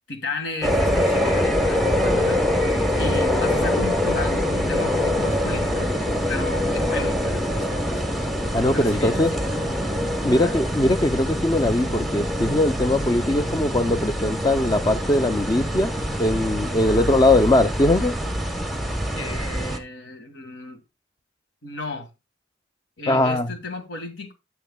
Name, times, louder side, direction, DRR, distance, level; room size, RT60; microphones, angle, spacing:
voice 1, 0.1-2.7 3.0-5.9 6.3-8.0 8.7-9.6 10.3-10.5 16.9-17.1 19.1-20.8 21.6-22.1 23.0-24.3, left 3 dB, 70° left, 1.7 m, -34 dB
sound 1, 0.6-19.8, left 1 dB, ahead, 0.9 m, -24 dB
voice 2, 8.5-9.3 10.2-15.9 16.2-18.2 23.1-23.5, left 1 dB, 20° left, 0.4 m, -20 dB
13.5 x 6.8 x 2.2 m
head